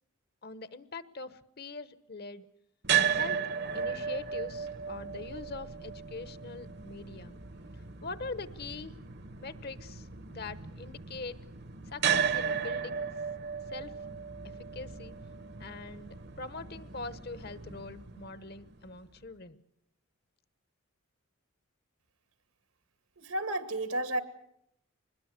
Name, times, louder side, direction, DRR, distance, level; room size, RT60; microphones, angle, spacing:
voice 1, 0.4-2.5 3.1-3.5 3.7-7.4 8.0-8.9 9.4-11.4 11.9-13.1 13.7-13.9 14.7-15.2 15.6-19.6, left 3 dB, 45° left, 14 dB, 1.0 m, -43 dB
sound 1, 2.8-19.0, right 7 dB, 50° right, 1.0 m, -35 dB
voice 2, 23.2-24.2, right 1 dB, 85° right, 10 dB, 2.3 m, -32 dB
25.0 x 21.0 x 8.2 m, 0.78 s
head